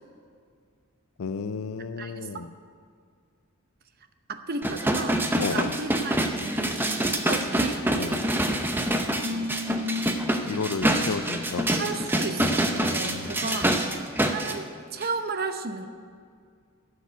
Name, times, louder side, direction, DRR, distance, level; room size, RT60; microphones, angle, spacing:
voice 1, 1.2-2.5 5.4-5.8 8.0-8.2 10.5-11.7 13.0-13.8, left 5 dB, 90° left, 12 dB, 0.5 m, -32 dB
voice 2, 2.0-2.3 4.3-5.2 5.5-7.9 9.2-10.6 11.8-13.7 14.2-15.9, right 2 dB, 45° right, 8 dB, 0.8 m, -34 dB
sound 1, 4.6-14.5 15.0-15.1, right 1 dB, 10° right, 0.7 m, -26 dB
12.0 x 6.7 x 9.2 m, 2.1 s
head